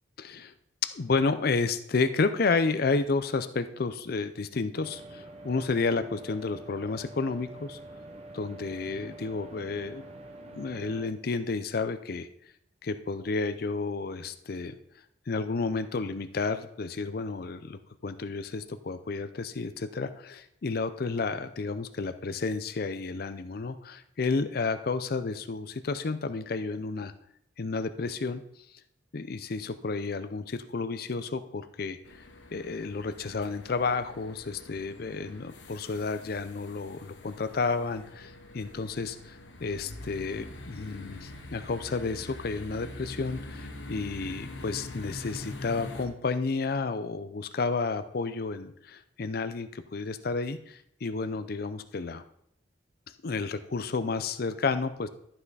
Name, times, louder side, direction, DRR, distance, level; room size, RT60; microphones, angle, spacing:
voice 1, 0.2-0.5 0.9-7.8 8.3-10.1 10.4-12.3 12.8-14.8 15.3-27.1 27.6-28.4 29.1-32.0 32.5-52.2 53.2-55.1, left 4 dB, 55° left, 11 dB, 0.5 m, -31 dB
sound 1, 4.8-11.1, right 1 dB, 35° right, 0.9 m, -46 dB
sound 2, 32.0-46.1, left 2 dB, 75° left, 1.1 m, -44 dB
12.0 x 5.7 x 4.0 m, 0.73 s
head